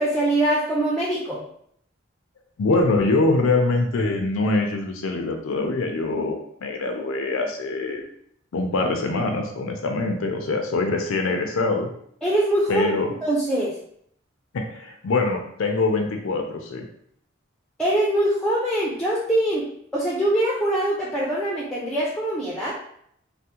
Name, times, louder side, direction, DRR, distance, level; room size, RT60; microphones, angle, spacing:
voice 1, 0.0-1.4 12.2-12.9 13.2-13.7 17.8-19.6 19.9-22.8, right 1 dB, 5° left, -6 dB, 0.4 m, -23 dB
voice 2, 2.6-8.0 8.5-11.9 12.7-13.1 14.5-16.9, left 3 dB, 80° left, 4 dB, 0.4 m, -24 dB
3.4 x 2.1 x 2.8 m, 0.68 s
head